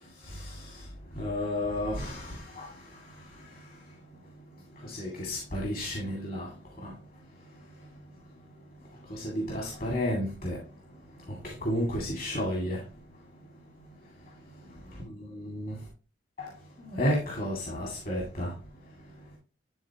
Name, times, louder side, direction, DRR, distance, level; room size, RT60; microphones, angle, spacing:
voice 1, 0.2-0.9 1.1-3.6 4.8-6.5 6.8-6.9 9.1-10.6 11.3-12.8 15.2-15.8 16.4-18.5, left 1 dB, 50° left, 2.2 m, -32 dB
11.0 x 4.0 x 2.9 m
head